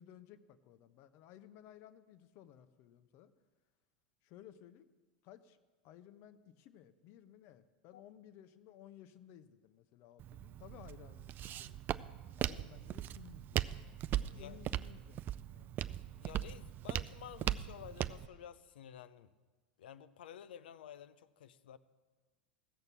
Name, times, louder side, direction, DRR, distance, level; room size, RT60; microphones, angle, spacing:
voice 1, 0.0-3.3 4.2-4.9 5.2-5.6 5.8-12.0 12.4-15.8, left 11 dB, 55° left, 0.9 m, -57 dB
Walk footsteps, 10.2-18.3, right 12 dB, 40° right, 0.4 m, -39 dB
voice 2, 16.2-19.3 19.8-21.8, left 10 dB, 75° left, 0.6 m, -52 dB
15.5 x 6.6 x 7.3 m
hypercardioid pair, 95°, 5 cm